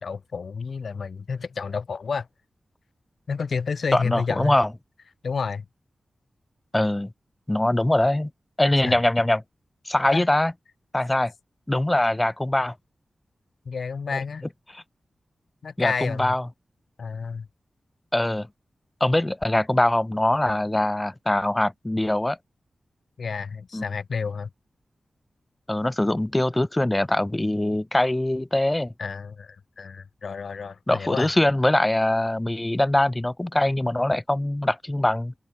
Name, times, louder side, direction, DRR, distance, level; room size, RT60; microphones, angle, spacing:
voice 1, 0.0-2.3 3.3-4.6 5.2-5.6 8.8-9.0 10.1-10.3 13.6-14.5 15.6-16.4 17.0-17.5 23.2-24.5 29.0-31.3, left 5 dB, 65° left, 1.1 m, -30 dB
voice 2, 3.9-4.7 6.7-7.1 7.5-8.3 8.6-9.4 9.9-10.5 10.9-11.3 11.7-12.7 14.1-14.2 14.7-14.8 15.8-16.5 18.1-18.5 19.0-22.4 23.7-23.8 25.7-28.9 30.9-35.3, left 1 dB, 15° left, 0.8 m, -22 dB
open air
wide cardioid pair, 105°, 0 cm